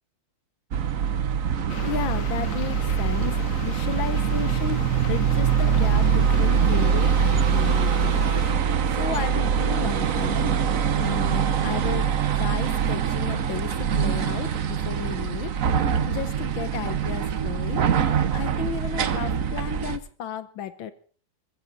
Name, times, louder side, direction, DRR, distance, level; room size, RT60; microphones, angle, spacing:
sound 1, 0.7-20.0, right 7 dB, 50° right, 1.2 m, -23 dB
voice 1, 1.6-8.5 8.9-10.5 11.0-12.1 12.3-17.9 18.3-20.9, left 9 dB, 70° left, 13 dB, 1.7 m, -34 dB
sound 2, 1.7-8.5, left 7 dB, 50° left, 1.2 m, -38 dB
21.5 x 15.5 x 4.0 m, 0.42 s
omnidirectional pair, 2.2 m